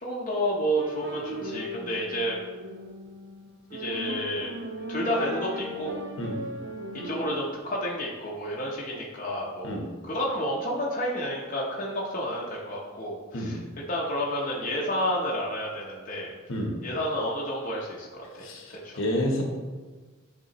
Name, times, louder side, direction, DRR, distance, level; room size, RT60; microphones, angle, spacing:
voice 1, 0.0-2.4 3.7-4.5 4.9-6.0 7.0-13.6 13.9-16.3 16.8-19.0, equal, 35° left, -4 dB, 0.8 m, -30 dB
sound 1, 0.8-7.2, equal, 55° right, 0.7 m, -37 dB
voice 2, 18.4-19.4, equal, 60° left, 1 dB, 1.0 m, -29 dB
9.2 x 3.9 x 3.0 m, 1.3 s
head